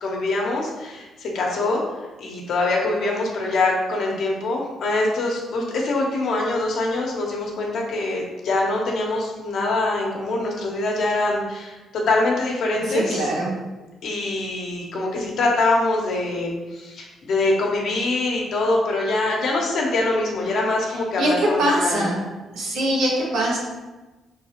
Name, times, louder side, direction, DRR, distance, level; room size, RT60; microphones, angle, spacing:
voice 1, 0.0-1.8 2.2-13.2 14.0-22.1, left 2 dB, 70° left, -1 dB, 1.0 m, -24 dB
voice 2, 12.8-13.5 20.9-22.2 22.5-23.6, right 1 dB, 90° right, -3 dB, 1.2 m, -22 dB
4.6 x 3.5 x 2.9 m, 1.2 s
cardioid pair, 90°, 0 cm